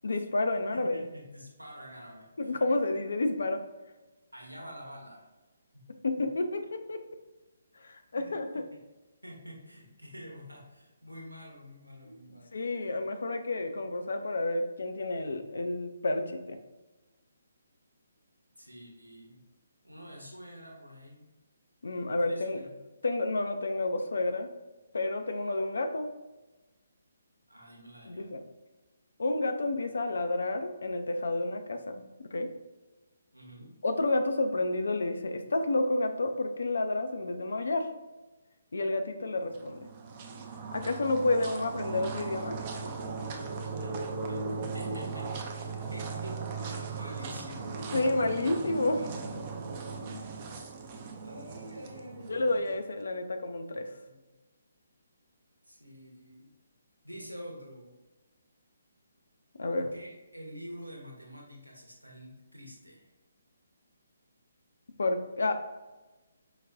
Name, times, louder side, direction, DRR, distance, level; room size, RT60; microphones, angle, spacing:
voice 1, 0.0-1.0 2.4-3.6 6.0-7.0 7.8-8.6 12.1-12.2 12.5-16.6 21.8-22.7 23.0-24.5 24.9-26.1 28.1-28.4 29.2-32.0 32.3-32.5 33.8-37.9 38.7-39.9 40.7-42.6 47.9-49.0 52.3-53.9 59.6-59.9 65.0-65.5, left 2 dB, 60° left, 7 dB, 0.4 m, -30 dB
voice 2, 0.7-2.6 4.3-5.3 5.7-5.8 8.2-8.4 9.2-12.6 18.6-19.4 19.8-21.3 22.2-22.8 27.5-28.4 33.3-33.7 43.8-48.2 48.9-52.7 54.0-54.2 55.6-56.4 57.0-57.9 59.7-63.1, equal, 90° right, -1 dB, 0.9 m, -47 dB
sound 1, 39.5-52.8, right 4 dB, 30° right, 0.4 m, -38 dB
4.7 x 2.2 x 2.5 m, 1.1 s
figure-of-eight pair, 140°, 0 cm